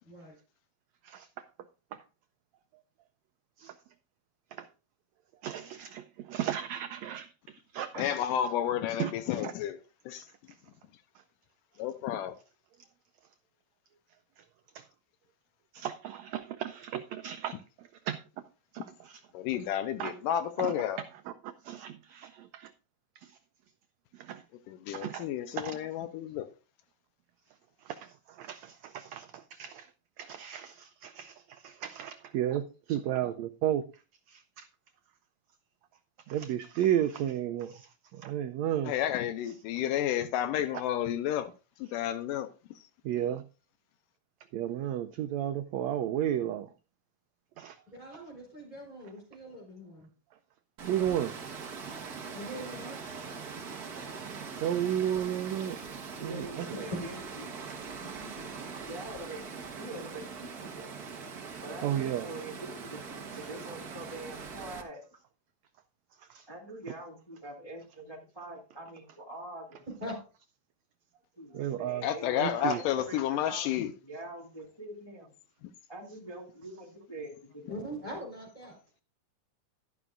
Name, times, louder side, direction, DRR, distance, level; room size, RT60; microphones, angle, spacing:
voice 1, 5.4-7.3 7.7-8.1 9.0-9.5 14.7-14.8 15.7-17.6 18.1-18.2 18.7-19.2 20.0-20.1 20.6-20.7 21.6-22.7 24.2-24.4 24.9-25.3 25.5-25.8 27.9-28.1 28.4-29.9 30.2-32.6 32.9-33.8 34.3-34.7 36.3-37.9 38.1-38.9 43.0-43.4 44.5-46.7 47.6-47.8 50.8-51.3 54.6-55.8 56.2-56.4 61.8-62.3 66.3-66.4 71.5-72.1 72.4-72.8, right 11 dB, 80° right, 1.6 m, -33 dB
voice 2, 8.0-9.8 10.1-10.3 11.8-12.3 19.3-21.0 24.7-26.5 38.9-41.5 41.8-42.5 72.0-73.9, left 11 dB, 85° left, 2.3 m, -31 dB
voice 3, 47.9-50.1 52.3-53.0 56.3-56.4 56.9-57.0 70.0-70.2 72.8-72.9 77.7-78.8, equal, 10° right, 3.5 m, -41 dB
Water, 50.8-64.8, right 5 dB, 55° right, 1.1 m, -42 dB
voice 4, 56.2-57.6 58.0-58.5 58.9-61.0 61.6-65.0 66.5-69.9 71.4-73.7 74.0-75.3 75.9-78.0, right 1 dB, 10° left, 1.3 m, -44 dB
12.0 x 11.0 x 2.5 m
omnidirectional pair, 3.8 m